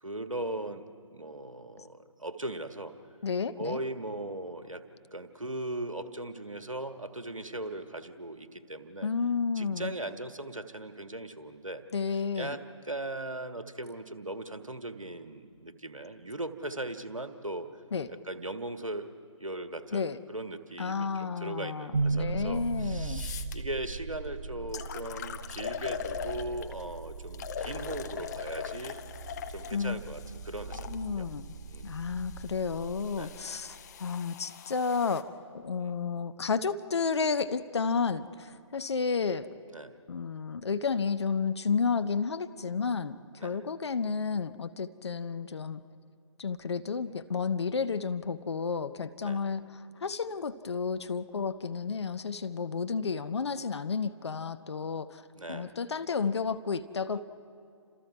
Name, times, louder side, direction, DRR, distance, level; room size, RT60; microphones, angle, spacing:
voice 1, 0.0-2.9 3.6-4.8 5.1-9.1 9.5-11.8 12.4-17.7 18.1-19.1 19.4-29.0 29.5-31.3 31.7-31.9 33.1-33.4 35.8-36.0 39.7-40.0 43.4-43.6 47.0-47.2 49.2-49.4 53.1-53.3 55.3-55.8 57.2-57.3, right 1 dB, 85° right, 8 dB, 1.6 m, -39 dB
voice 2, 3.2-3.8 9.0-10.0 11.9-12.6 17.9-18.1 19.9-20.2 20.8-23.3 29.7-30.0 30.9-31.6 31.8-39.5 40.1-45.8 46.4-49.6 50.0-55.2 55.5-57.2, left 5 dB, 55° left, 11 dB, 1.0 m, -31 dB
sound 1, 21.9-34.0, right 4 dB, 50° right, 1.0 m, -38 dB
sound 2, 22.6-22.7 23.1-23.6 24.2-24.3 24.7-26.8 27.3-31.0 31.8-35.2, left 9 dB, 35° left, 1.0 m, -41 dB
29.5 x 27.0 x 4.8 m, 2.3 s
figure-of-eight pair, 140°, 17 cm